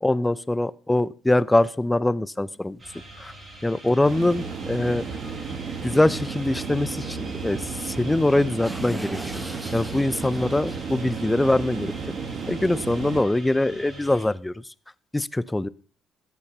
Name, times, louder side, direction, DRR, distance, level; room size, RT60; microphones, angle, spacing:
voice 1, 0.0-2.8 3.2-3.3 3.6-5.0 5.8-9.2 9.7-11.9 12.5-14.6 15.1-15.7, left 1 dB, 10° left, 19 dB, 0.5 m, -23 dB
sound 1, 2.5-2.6 3.1-3.2 3.9-4.0 4.2-4.3 4.6-4.8 6.5-6.6 6.8-6.9 7.5-12.8, right 1 dB, 5° right, 0.9 m, -41 dB
sound 2, 2.8-14.3, right 1 dB, 25° right, 6.3 m, -44 dB
sound 3, 4.0-13.2, right 5 dB, 50° right, 1.9 m, -33 dB
14.0 x 8.4 x 5.4 m, 0.42 s
cardioid pair, 105°, 0 cm